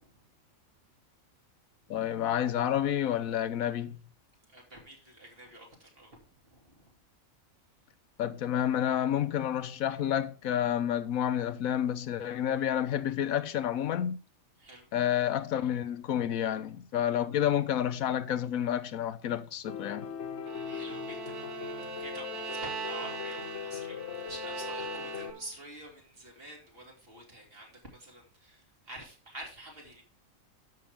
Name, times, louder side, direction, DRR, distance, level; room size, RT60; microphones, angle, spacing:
voice 1, 1.9-4.0 8.2-14.2 14.9-20.1, left 10 dB, 90° left, 1.2 m, -29 dB
voice 2, 4.5-6.9 14.6-14.9 20.6-24.0 24.2-30.0, right 1 dB, 45° right, 2.9 m, -48 dB
Piano, 19.7-25.3, left 7 dB, 55° left, 1.3 m, -39 dB
Bowed string instrument, 20.4-25.6, right 7 dB, 65° right, 1.1 m, -41 dB
12.5 x 6.1 x 3.5 m
omnidirectional pair, 1.4 m